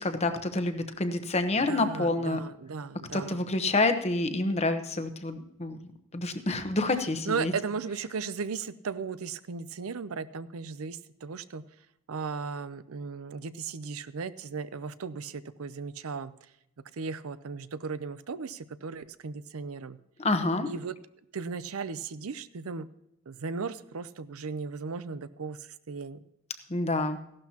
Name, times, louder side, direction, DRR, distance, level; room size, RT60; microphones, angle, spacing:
voice 1, 0.0-2.4 3.1-5.8 6.1-7.5 20.2-20.7 26.7-27.2, left 2 dB, 30° left, 8 dB, 1.0 m, -28 dB
voice 2, 1.6-3.4 7.3-11.6 12.1-16.3 16.9-20.0 20.7-21.0 21.3-22.9 23.3-26.2, right 5 dB, 85° right, 14 dB, 0.6 m, -36 dB
15.5 x 12.0 x 2.9 m, 0.80 s
head